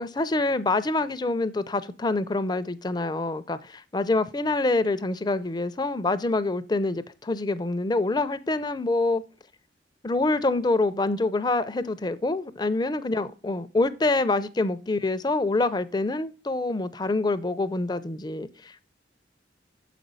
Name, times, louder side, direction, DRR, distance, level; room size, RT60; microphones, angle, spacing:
voice 1, 0.0-9.2 10.0-18.9, left 2 dB, 25° left, 0.5 m, -26 dB
7.5 x 5.1 x 5.4 m
head